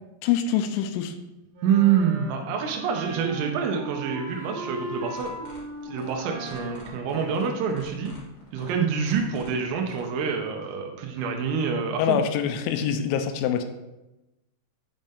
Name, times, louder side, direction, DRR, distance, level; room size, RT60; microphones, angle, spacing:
voice 1, 0.2-1.1 12.0-13.6, left 8 dB, 85° left, 8 dB, 3.0 m, -25 dB
Wind instrument woodwind instrument, 1.5-8.1, right 2 dB, 70° right, 3.6 m, -38 dB
voice 2, 1.6-5.3 5.8-8.2 8.5-12.2, right 7 dB, 90° right, 3 dB, 3.5 m, -26 dB
sound 1, 5.1-10.1, left 1 dB, 40° left, 1.8 m, -48 dB
9.0 x 5.3 x 3.6 m, 0.99 s
omnidirectional pair, 5.8 m